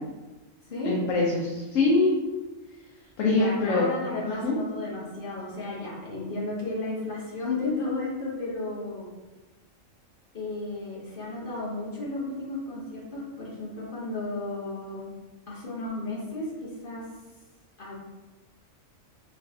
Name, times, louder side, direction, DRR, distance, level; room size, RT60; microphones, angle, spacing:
voice 1, 0.8-2.1 3.2-3.9 4.4-4.6, left 3 dB, 75° left, -3 dB, 1.0 m, -23 dB
voice 2, 3.2-9.1 10.3-15.0 15.5-17.0 17.8-17.9, left 2 dB, 45° left, -5 dB, 1.1 m, -33 dB
4.2 x 3.2 x 2.7 m, 1.2 s
omnidirectional pair, 1.4 m